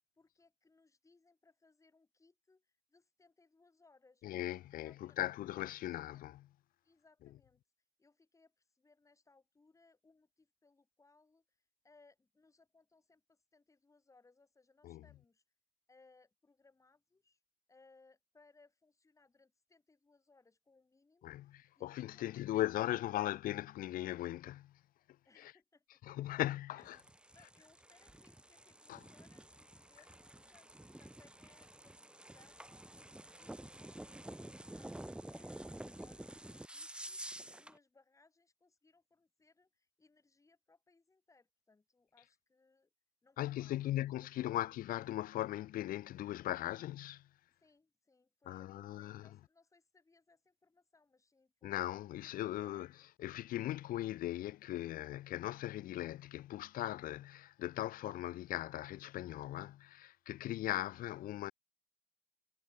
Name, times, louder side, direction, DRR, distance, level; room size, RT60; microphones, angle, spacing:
voice 1, 0.2-4.2 4.5-5.2 5.5-5.7 6.1-6.3 6.8-7.6 8.0-15.4 15.9-17.4 17.7-22.9 25.3-26.0 26.3-26.4 26.7-26.8 27.3-32.7 33.0-42.9 43.2-43.9 44.3-44.5 47.6-52.0 52.6-52.9, left 3 dB, 20° left, 3.6 m, -69 dB
voice 2, 4.2-6.5 14.8-15.0 21.2-24.7 25.4-25.5 26.0-27.0 28.9-29.0 43.4-47.3 48.5-49.3 51.6-52.9 53.2-61.5, left 14 dB, 60° left, 0.4 m, -39 dB
sound 1, 26.8-37.8, right 1 dB, 5° right, 1.7 m, -50 dB
cardioid pair, 110°, 17 cm